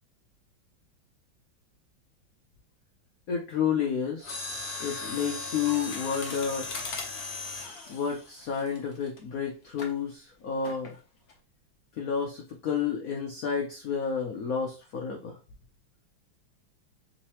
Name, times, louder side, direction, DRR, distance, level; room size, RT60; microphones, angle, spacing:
voice 1, 3.3-4.3 4.8-6.7 7.9-10.9 12.0-15.4, left 6 dB, 90° left, 1 dB, 0.7 m, -30 dB
Mechanisms, 4.2-9.2 9.8-10.0 10.6-11.0 11.3-11.4, left 3 dB, 50° left, 0.7 m, -37 dB
3.8 x 3.0 x 2.9 m, 0.33 s
omnidirectional pair, 2.2 m